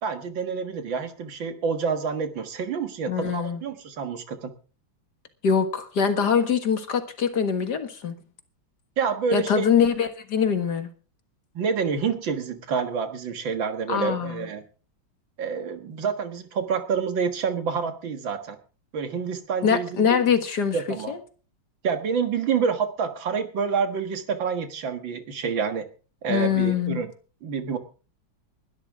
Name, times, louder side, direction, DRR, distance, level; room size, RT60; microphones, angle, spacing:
voice 1, 0.0-4.5 9.0-9.7 11.5-14.6 15.4-18.6 18.9-20.2 20.7-21.1 21.8-25.9 26.2-27.1 27.4-27.8, right 6 dB, 80° right, 7 dB, 2.4 m, -28 dB
voice 2, 3.1-3.6 5.4-8.1 9.3-10.9 13.9-14.5 19.6-20.8 21.1-21.2 26.3-27.0, left 7 dB, 60° left, 7 dB, 2.2 m, -23 dB
21.0 x 12.0 x 3.7 m, 0.37 s
omnidirectional pair, 2.1 m